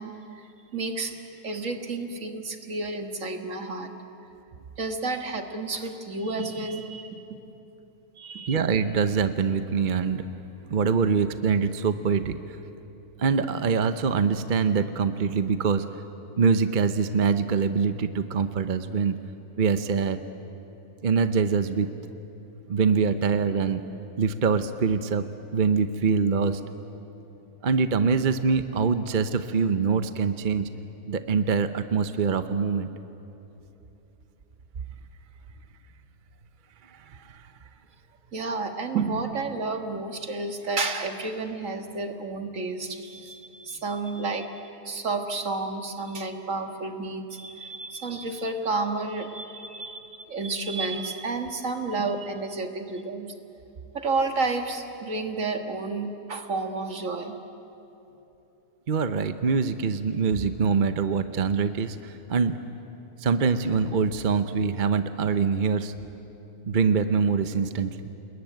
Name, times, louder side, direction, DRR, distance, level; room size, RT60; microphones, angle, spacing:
voice 1, 0.0-3.9 4.8-7.2 8.2-8.6 38.3-44.5 44.8-53.3 53.9-57.4, right 3 dB, 60° right, 5 dB, 2.1 m, -31 dB
voice 2, 8.5-10.2 10.7-12.6 13.2-15.8 16.4-19.2 19.6-20.2 21.0-21.9 22.7-23.8 24.2-25.3 25.5-26.6 27.6-30.7 31.1-32.9 36.9-37.5 58.9-62.6 63.2-65.9 66.6-68.0, right 5 dB, 40° right, 10 dB, 0.8 m, -24 dB
29.0 x 21.0 x 9.2 m, 3.0 s
omnidirectional pair, 1.6 m